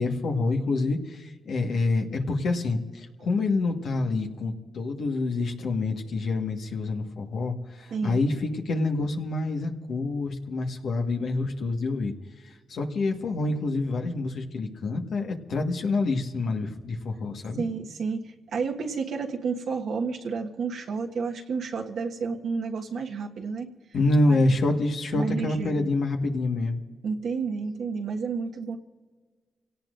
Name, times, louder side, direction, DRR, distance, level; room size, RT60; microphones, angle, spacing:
voice 1, 0.0-12.1 12.4-17.6 23.9-26.8, left 2 dB, 75° left, 2 dB, 1.6 m, -27 dB
voice 2, 17.6-23.7 24.3-24.4 25.1-25.9 27.0-28.8, right 5 dB, 80° right, 1 dB, 1.5 m, -31 dB
27.5 x 17.5 x 2.6 m, 1.5 s
cardioid pair, 60°, 0 cm